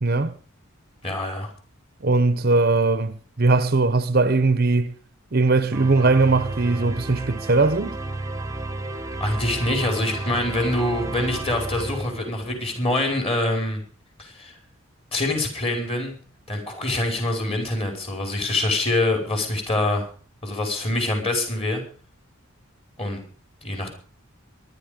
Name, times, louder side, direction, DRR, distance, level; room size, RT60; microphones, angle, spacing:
voice 1, 0.0-0.3 2.0-4.9 5.3-8.0, right 3 dB, 45° right, 0.8 m, -20 dB
voice 2, 1.0-1.5 9.2-13.8 14.2-14.5 15.1-16.1 16.5-20.1 20.4-21.8 23.0-23.2 23.6-24.0, left 2 dB, 25° left, 5.0 m, -25 dB
sound 1, 5.7-12.8, right 2 dB, 15° right, 1.1 m, -32 dB
23.0 x 11.0 x 5.2 m
head